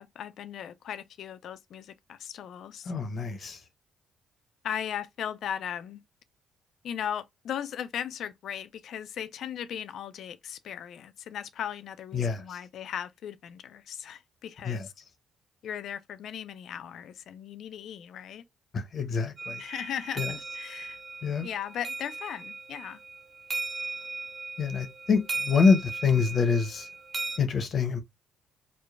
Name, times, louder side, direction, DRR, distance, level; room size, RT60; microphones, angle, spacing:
voice 1, 0.0-2.9 4.6-6.0 6.8-14.9 15.6-18.4 19.6-21.0 21.4-23.0, left 9 dB, 70° left, 0.3 m, -37 dB
voice 2, 2.9-3.6 12.1-12.4 14.6-14.9 18.7-19.6 20.2-20.3 21.2-21.5 24.6-26.9 27.4-28.0, left 5 dB, 55° left, 0.7 m, -26 dB
sound 1, 19.4-27.4, right 3 dB, 40° right, 0.3 m, -37 dB
3.2 x 2.1 x 2.3 m
supercardioid pair, 65°, 0 cm